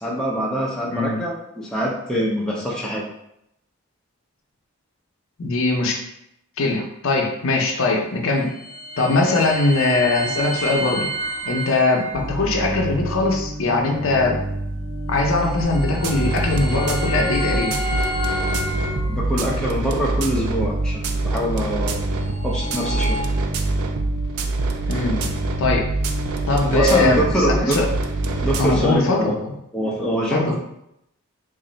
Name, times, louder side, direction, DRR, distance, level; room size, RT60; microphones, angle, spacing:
voice 1, 0.0-3.0 19.1-22.0 22.4-23.2 26.7-27.8 28.4-29.4 29.7-30.5, equal, 5° left, -4 dB, 0.5 m, -24 dB
voice 2, 0.9-1.2 5.4-6.0 6.6-8.5 9.0-11.1 11.5-14.4 15.1-17.8 24.9-25.2 25.6-25.9 26.5-27.9 28.6-29.5 30.3-30.5, left 3 dB, 65° left, 1 dB, 0.6 m, -21 dB
sound 1, 8.2-12.2 15.0-19.5 22.0-23.2, equal, 35° right, 0.9 m, -30 dB
sound 2, 12.1-28.8, right 1 dB, 70° right, 0.8 m, -30 dB
sound 3, 15.6-28.9, right 2 dB, 85° right, 0.4 m, -26 dB
3.1 x 2.5 x 3.9 m, 0.80 s
head